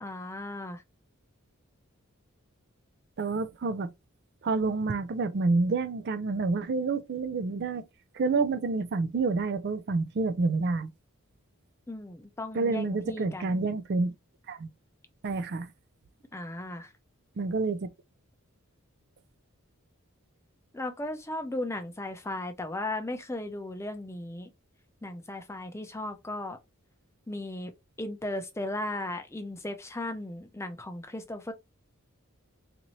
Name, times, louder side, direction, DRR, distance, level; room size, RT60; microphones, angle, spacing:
voice 1, 0.0-0.8 11.9-13.6 16.3-16.9 20.7-24.5 25.0-26.6 27.3-27.7 28.0-31.5, left 1 dB, 10° left, 0.5 m, -36 dB
voice 2, 3.2-3.9 4.4-7.8 8.1-10.9 12.5-14.1 14.5-14.7 15.2-15.7 17.4-17.9, right 3 dB, 50° right, 0.4 m, -28 dB
4.2 x 2.6 x 3.0 m
head